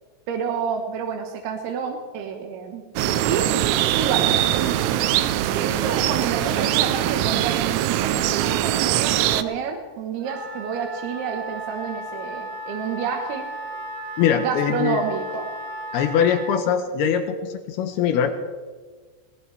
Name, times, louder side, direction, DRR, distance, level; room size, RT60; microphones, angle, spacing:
voice 1, 0.3-2.8 3.2-3.5 3.9-5.2 5.5-13.5 14.4-15.5, right 6 dB, 70° right, 2 dB, 2.8 m, -29 dB
sound 1, 3.0-9.4, right 13 dB, 90° right, 3.2 m, -22 dB
Wind instrument woodwind instrument, 10.2-16.6, right 1 dB, 50° right, 3.9 m, -35 dB
voice 2, 14.2-15.0 15.9-18.3, left 8 dB, 80° left, 7 dB, 2.3 m, -22 dB
20.0 x 19.0 x 3.3 m, 1.4 s
omnidirectional pair, 5.6 m